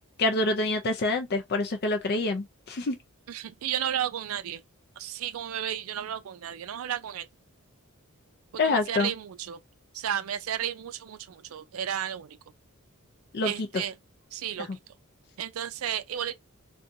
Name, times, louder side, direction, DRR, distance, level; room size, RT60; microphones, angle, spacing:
voice 1, 0.2-3.0 8.6-9.1 13.3-13.8 14.6-14.7, left 2 dB, 45° left, 0.5 m, -27 dB
voice 2, 3.3-4.6 5.0-7.3 8.6-9.6 9.9-12.4 13.4-13.9 14.3-14.7 15.4-16.3, right 10 dB, 70° right, 0.4 m, -33 dB
2.6 x 2.3 x 2.6 m
head